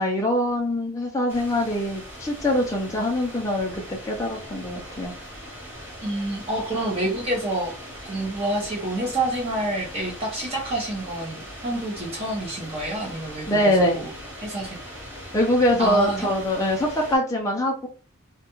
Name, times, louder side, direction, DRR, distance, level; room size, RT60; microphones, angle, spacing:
voice 1, 0.0-5.1 13.5-14.1 15.3-17.9, left 1 dB, 15° left, -1 dB, 0.4 m, -23 dB
sound 1, 1.3-17.2, equal, 10° right, 1.0 m, -40 dB
voice 2, 6.0-7.7 8.0-14.1 14.4-14.8 15.8-16.3, right 1 dB, 30° right, -2 dB, 0.7 m, -28 dB
2.3 x 2.1 x 2.9 m, 0.37 s
head